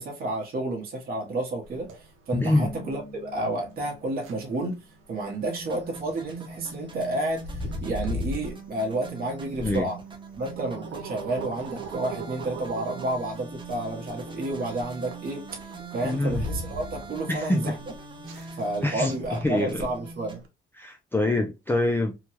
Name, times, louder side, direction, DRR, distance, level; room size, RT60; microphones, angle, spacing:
voice 1, 0.0-10.0 10.4-17.7 18.6-20.4, right 2 dB, 50° right, 1.0 m, -31 dB
sound 1, 1.6-20.5, equal, 85° right, 0.7 m, -39 dB
Drum, 2.3-4.5, left 4 dB, 35° left, 0.9 m, -37 dB
sound 2, 5.4-20.4, right 3 dB, 25° right, 0.8 m, -42 dB
voice 2, 16.0-16.4 17.3-17.7 18.3-18.5 18.8-19.2 19.4-19.9 20.8-22.1, left 1 dB, 10° left, 0.4 m, -25 dB
2.8 x 2.2 x 2.9 m
cardioid pair, 90°, 20 cm